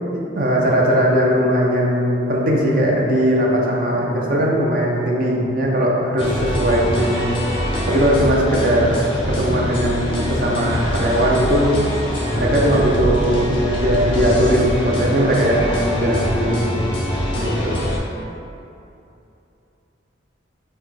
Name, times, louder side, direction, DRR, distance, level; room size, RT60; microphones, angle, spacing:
voice 1, 0.1-7.3 7.9-9.0 9.2-11.8 12.4-16.9 17.3-17.8, equal, 45° right, -3 dB, 0.5 m, -19 dB
sound 1, 6.2-18.0, equal, 25° left, 0.6 m, -24 dB
5.5 x 2.2 x 3.2 m, 2.8 s
head